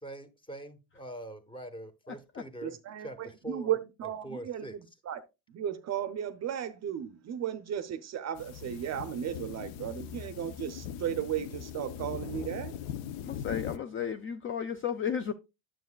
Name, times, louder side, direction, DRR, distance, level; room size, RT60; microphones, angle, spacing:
voice 1, 0.0-3.7 4.0-4.8, right 1 dB, 10° left, 1.0 m, -43 dB
voice 2, 2.6-5.2 5.5-12.8, right 10 dB, 40° right, 0.5 m, -35 dB
sound 1, 8.4-13.8, left 9 dB, 75° left, 0.7 m, -40 dB
voice 3, 13.2-15.3, left 7 dB, 30° left, 0.4 m, -33 dB
9.2 x 7.4 x 2.2 m
cardioid pair, 115°, 44 cm